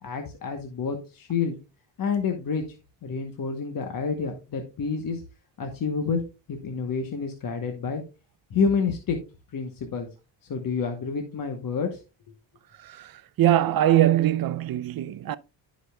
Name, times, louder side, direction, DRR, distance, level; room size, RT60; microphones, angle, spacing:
voice 1, 0.0-1.6 2.0-2.6 3.0-5.2 5.6-8.0 8.5-9.2 9.5-10.1 10.5-12.0, left 5 dB, 50° left, 1.1 m, -28 dB
voice 2, 13.4-15.4, right 12 dB, 50° right, 0.6 m, -22 dB
14.5 x 5.2 x 2.3 m
cardioid pair, 95°, 45 cm